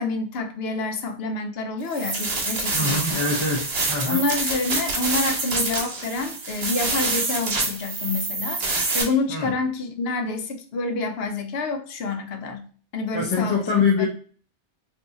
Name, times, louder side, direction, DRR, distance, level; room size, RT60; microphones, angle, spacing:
voice 1, 0.0-3.2 4.1-8.6 8.9-12.6 12.9-13.6 14.0-14.1, left 3 dB, 70° left, 6 dB, 0.8 m, -28 dB
sound 1, 1.9-9.0, right 3 dB, 60° right, 1.1 m, -26 dB
voice 2, 2.7-4.2 9.3-9.5 13.1-14.1, left 4 dB, 30° left, -4 dB, 0.6 m, -24 dB
2.7 x 2.4 x 3.8 m, 0.42 s
omnidirectional pair, 1.2 m